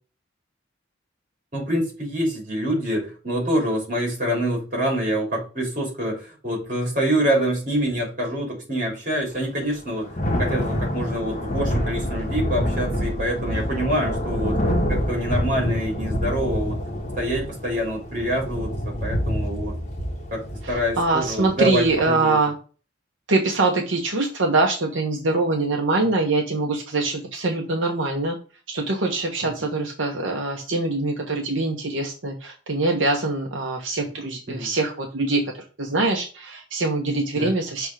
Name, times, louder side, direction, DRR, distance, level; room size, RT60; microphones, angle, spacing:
voice 1, 1.5-10.1 10.4-14.6 14.9-16.8 17.1-19.8 20.3-22.4 26.0-26.1 29.4-29.5 34.5-34.7 37.3-37.6, equal, 45° right, -1 dB, 3.0 m, -26 dB
Thunder / Rain, 9.6-22.0, equal, 35° left, 1.6 m, -27 dB
voice 2, 20.6-22.5 23.3-28.4 28.7-37.9, right 2 dB, 80° right, 1 dB, 1.0 m, -24 dB
6.0 x 3.5 x 4.8 m, 0.36 s
head